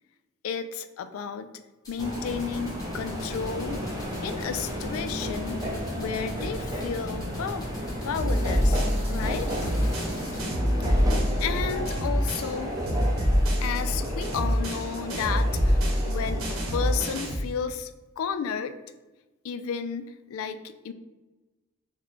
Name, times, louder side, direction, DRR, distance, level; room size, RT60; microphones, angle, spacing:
voice 1, 0.4-1.5 1.9-3.8 4.2-5.6 6.0-7.7 8.0-9.5 11.4-12.8 13.6-16.5 16.7-17.9 18.2-18.7 19.4-20.9, left 6 dB, 75° left, 11 dB, 0.3 m, -32 dB
sound 1, 1.8-10.4, left 1 dB, 20° left, 1.0 m, -46 dB
sound 2, 2.0-17.3, equal, 15° right, 0.5 m, -33 dB
sound 3, 8.2-12.6 12.9-17.5, equal, 85° right, 0.8 m, -26 dB
3.1 x 2.2 x 3.9 m, 1.1 s
head